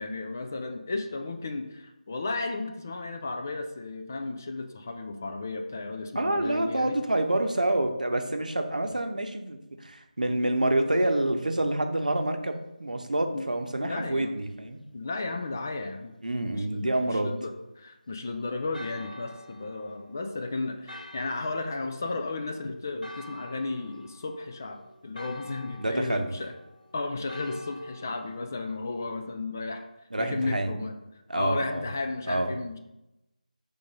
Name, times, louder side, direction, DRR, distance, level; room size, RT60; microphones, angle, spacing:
voice 1, 0.0-7.0 13.3-13.5 13.8-14.4 14.9-16.1 16.4-26.5 26.9-29.9 30.2-30.9 31.3-32.8, left 3 dB, 20° left, 5 dB, 0.3 m, -34 dB
voice 2, 6.1-14.8 16.2-17.4 25.8-26.3 30.1-30.7 31.3-31.8 32.3-32.5, right 1 dB, 65° right, 6 dB, 0.8 m, -27 dB
Church bell, 18.7-28.4, left 1 dB, 85° left, 0.9 m, -48 dB
5.7 x 3.5 x 5.1 m, 0.94 s
figure-of-eight pair, 160°, 5 cm